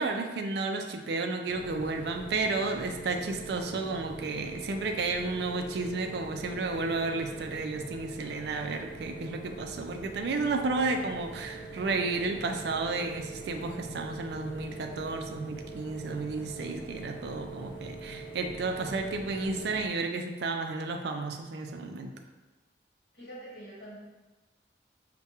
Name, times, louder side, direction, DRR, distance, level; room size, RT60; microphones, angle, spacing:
voice 1, 0.0-22.1, right 3 dB, 60° right, 4 dB, 0.3 m, -32 dB
sound 1, 1.5-19.9, right 2 dB, 75° left, 0.6 m, -43 dB
voice 2, 23.1-24.0, right 1 dB, 55° left, -7 dB, 1.4 m, -45 dB
4.6 x 2.2 x 2.8 m, 1.2 s
head